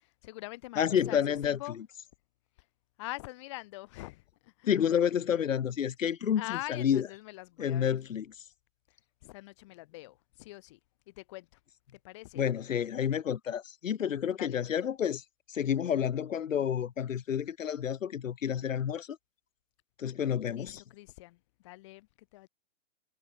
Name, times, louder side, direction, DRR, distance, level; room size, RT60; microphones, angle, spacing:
voice 1, 0.2-1.2 1.4-1.8 3.0-4.2 4.6-4.7 6.4-8.0 9.2-10.8 11.2-11.5 12.0-12.4 14.4-14.6 20.5-21.4 21.6-22.1 22.3-22.5, left 20 dB, 25° left, 1.5 m, -43 dB
voice 2, 0.8-1.9 4.7-7.1 7.6-8.3 12.3-15.2 15.5-19.2 20.0-20.8, left 9 dB, 85° left, 1.4 m, -30 dB
hypercardioid pair, 170°, 38 cm